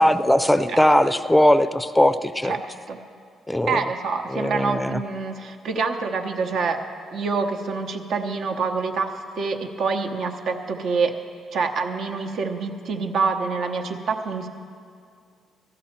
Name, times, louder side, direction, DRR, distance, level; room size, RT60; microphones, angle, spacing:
voice 1, 0.0-2.6 3.5-3.8 4.3-5.0, left 1 dB, 5° left, 12 dB, 0.5 m, -19 dB
voice 2, 2.4-3.0 3.7-6.8 7.1-11.2 11.5-14.5, right 4 dB, 70° right, 5 dB, 0.9 m, -26 dB
14.0 x 13.0 x 4.4 m, 2.3 s
cardioid pair, 90°, 0 cm